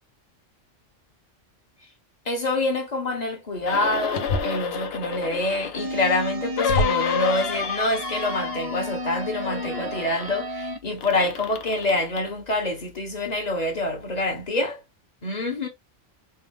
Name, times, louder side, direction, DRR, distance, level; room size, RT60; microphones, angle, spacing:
voice 1, 2.2-14.8 15.2-15.7, left 2 dB, 35° left, 1.2 m, -26 dB
sound 1, 3.6-5.9 6.6-9.1 9.3-10.3 11.0-12.3 12.9-13.0, left 7 dB, 60° left, 0.8 m, -30 dB
sound 2, 4.1-4.6 6.0-6.1 6.7-7.2, left 2 dB, 80° left, 1.3 m, -26 dB
sound 3, 5.8-10.8, equal, 30° right, 0.4 m, -33 dB
4.4 x 2.1 x 3.4 m
omnidirectional pair, 1.3 m